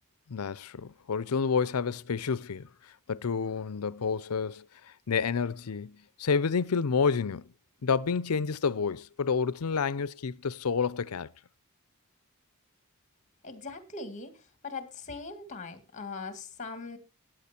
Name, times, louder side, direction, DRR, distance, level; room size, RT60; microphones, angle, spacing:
voice 1, 0.3-2.7 3.1-4.6 5.1-7.5 7.8-11.3, left 5 dB, 85° left, 0.6 m, -29 dB
voice 2, 13.4-17.0, left 4 dB, 35° left, 2.0 m, -40 dB
15.5 x 9.0 x 4.4 m
head